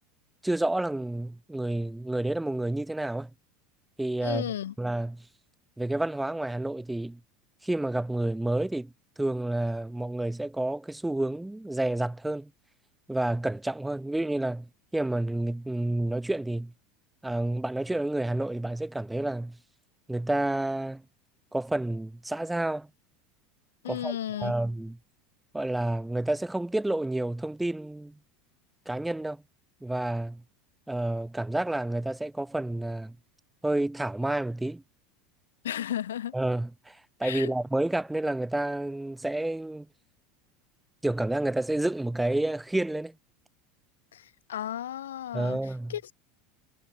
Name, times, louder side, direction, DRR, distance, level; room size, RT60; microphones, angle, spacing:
voice 1, 0.4-3.3 4.0-5.2 5.8-7.2 7.6-8.9 9.2-12.5 13.1-16.7 17.2-19.6 20.1-21.0 21.5-22.9 23.9-25.0 25.5-28.2 28.9-29.4 29.8-30.4 30.9-33.2 33.6-34.8 36.3-39.9 41.0-43.1 45.3-46.0, right 1 dB, 5° right, 0.8 m, -29 dB
voice 2, 4.2-4.7 23.8-24.5 35.6-36.3 37.2-37.5 44.1-44.2 44.5-45.6 45.9-46.1, left 11 dB, 70° left, 1.1 m, -33 dB
figure-of-eight pair, 75°, 0 cm